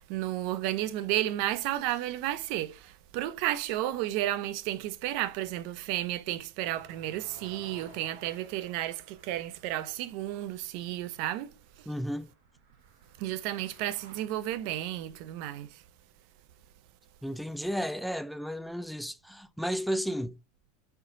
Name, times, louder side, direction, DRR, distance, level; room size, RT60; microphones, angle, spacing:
voice 1, 0.0-11.5 13.2-15.8, right 14 dB, 60° right, 0.5 m, -32 dB
sound 1, 6.7-14.2, right 4 dB, 80° right, 1.6 m, -56 dB
voice 2, 11.9-12.3 17.2-20.4, equal, ahead, 0.3 m, -33 dB
4.4 x 3.9 x 2.6 m
supercardioid pair, 110°, 0 cm